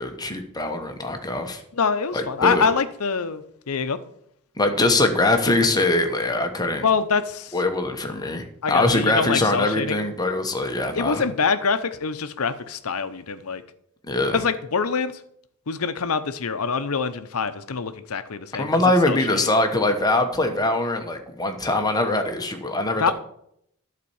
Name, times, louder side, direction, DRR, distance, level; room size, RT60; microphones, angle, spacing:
voice 1, 0.0-1.6 2.1-2.7 4.6-6.8 7.5-11.2 14.1-14.4 18.5-23.1, left 2 dB, 20° left, 5 dB, 1.1 m, -22 dB
voice 2, 1.7-4.0 6.8-7.5 8.6-10.0 10.9-13.6 14.3-15.1 15.7-18.7 19.1-19.4 23.0-23.1, left 5 dB, 70° left, 12 dB, 0.7 m, -25 dB
11.5 x 4.2 x 7.1 m, 0.71 s
head